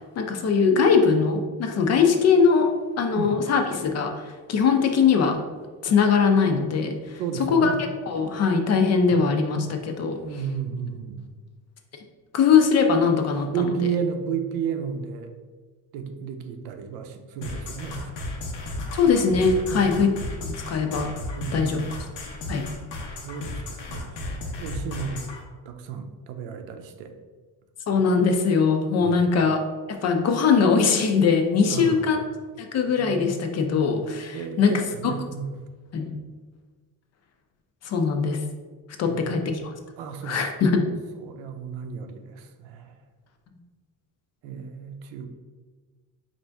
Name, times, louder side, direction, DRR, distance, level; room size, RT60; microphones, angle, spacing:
voice 1, 0.2-5.4 5.8-7.2 7.5-7.7 8.1-10.2 12.3-13.7 18.9-20.1 20.4-21.1 21.5-21.8 22.5-22.7 27.9-29.6 29.9-32.2 32.6-34.7 35.0-35.1 35.9-36.2 37.8-38.4 39.0-39.7 40.2-40.9, left 5 dB, 40° left, 5 dB, 0.4 m, -21 dB
voice 2, 7.2-7.8 9.1-9.2 10.2-11.3 13.5-15.3 15.9-18.3 19.7-19.9 21.3-21.8 23.2-25.3 25.7-27.1 29.0-29.2 31.7-32.1 34.3-35.7 39.0-39.4 40.0-40.5 41.2-42.9 44.4-45.3, right 7 dB, 90° right, 7 dB, 0.6 m, -33 dB
sound 1, 17.4-25.4, left 2 dB, 90° left, 0.9 m, -34 dB
4.2 x 2.6 x 3.3 m, 1.4 s
cardioid pair, 135°, 42 cm